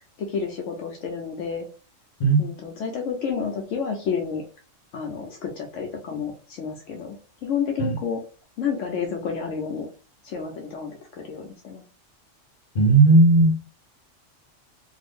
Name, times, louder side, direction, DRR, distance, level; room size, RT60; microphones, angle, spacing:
voice 1, 0.2-1.7 2.4-4.4 4.9-7.2 7.4-8.2 8.6-9.9 10.2-11.8, left 6 dB, 75° left, 0.9 m, -30 dB
voice 2, 12.7-13.5, right 3 dB, 45° left, 1.1 m, -15 dB
2.6 x 2.5 x 3.5 m
omnidirectional pair, 1.3 m